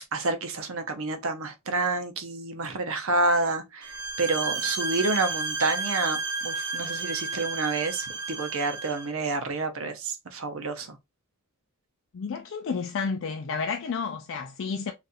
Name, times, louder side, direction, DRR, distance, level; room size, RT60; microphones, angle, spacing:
voice 1, 0.1-3.9 4.2-11.0, right 3 dB, 65° right, 0.7 m, -29 dB
sound 1, 3.8-9.1, right 3 dB, 85° right, 1.0 m, -32 dB
voice 2, 12.1-14.9, left 5 dB, 55° left, 0.4 m, -31 dB
4.0 x 2.5 x 2.5 m
head